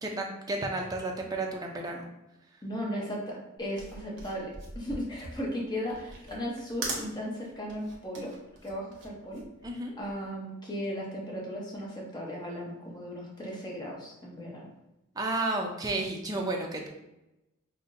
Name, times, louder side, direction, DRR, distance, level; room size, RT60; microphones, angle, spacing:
voice 1, 0.0-2.0 9.6-9.9 15.2-16.9, right 2 dB, 15° right, 1 dB, 0.4 m, -32 dB
voice 2, 2.6-8.3 8.6-9.4 10.0-14.7, equal, 20° left, -3 dB, 0.8 m, -36 dB
sound 1, 3.6-10.3, right 3 dB, 55° right, 1.0 m, -41 dB
5.4 x 2.1 x 2.6 m, 0.94 s
head